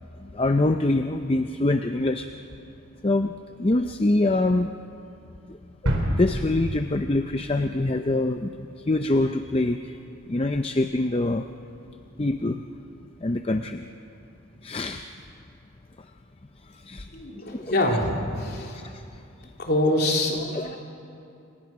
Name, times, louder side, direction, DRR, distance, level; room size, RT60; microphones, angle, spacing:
voice 1, 0.2-2.4 3.0-4.7 5.5-5.6 5.8-10.0 10.3-11.5 12.2-12.6 13.2-13.9 14.6-15.1 16.0-16.1 16.6-17.1 17.5-18.0 18.5-19.5 20.5-20.8, left 2 dB, 25° left, 7 dB, 0.5 m, -25 dB
sound 1, 5.9-7.8 8.2-8.3, equal, 85° right, 4.6 m, -28 dB
voice 2, 17.1-18.7 19.6-20.8, left 1 dB, 45° left, 0 dB, 3.4 m, -25 dB
28.5 x 25.0 x 6.1 m, 2.7 s
head